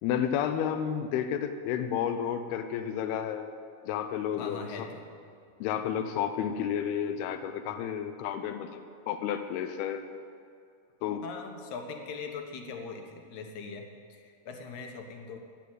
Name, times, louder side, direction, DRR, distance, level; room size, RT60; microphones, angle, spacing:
voice 1, 0.0-3.5 3.8-4.9 5.6-10.0 11.0-11.3, left 9 dB, 90° left, 8 dB, 2.7 m, -31 dB
voice 2, 4.4-5.1 11.2-15.4, left 4 dB, 60° left, 3 dB, 2.3 m, -41 dB
13.5 x 8.7 x 9.4 m, 2.3 s
omnidirectional pair, 4.5 m